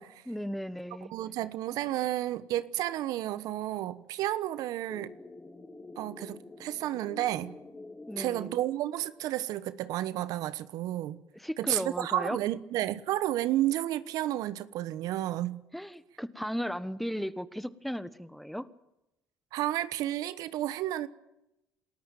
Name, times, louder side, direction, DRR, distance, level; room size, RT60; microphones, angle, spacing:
voice 1, 0.3-1.1 8.1-8.6 11.3-12.4 15.7-18.7, equal, ahead, 1.3 m, -36 dB
voice 2, 1.1-5.1 6.0-7.6 8.2-11.2 11.6-15.6 19.5-21.1, right 14 dB, 70° right, 1.1 m, -31 dB
sound 1, 4.9-9.2, left 2 dB, 15° left, 2.4 m, -48 dB
28.0 x 13.5 x 9.2 m
supercardioid pair, 75°, 6 cm